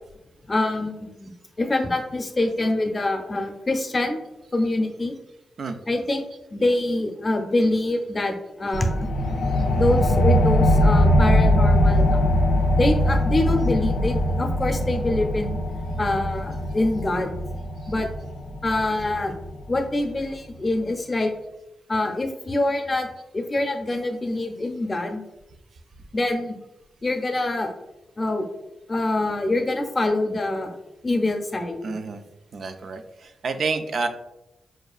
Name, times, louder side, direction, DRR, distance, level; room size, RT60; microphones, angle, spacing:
voice 1, 0.5-0.9 1.2-1.3 1.6-4.2 4.5-5.1 5.9-6.2 6.5-9.1 9.8-12.2 12.7-15.6 16.0-17.3 17.9-18.1 18.6-19.3 19.7-21.3 21.9-23.1 23.3-25.2 26.1-26.5 27.0-27.7 28.2-28.5 28.9-30.7 31.0-31.8, left 2 dB, 35° left, 4 dB, 0.6 m, -25 dB
sound 1, 8.7-19.8, equal, 80° left, 0.4 m, -21 dB
voice 2, 31.8-32.2 32.5-34.1, right 4 dB, 60° right, 8 dB, 0.3 m, -29 dB
4.9 x 2.3 x 2.4 m, 0.92 s
cardioid pair, 70°, 0 cm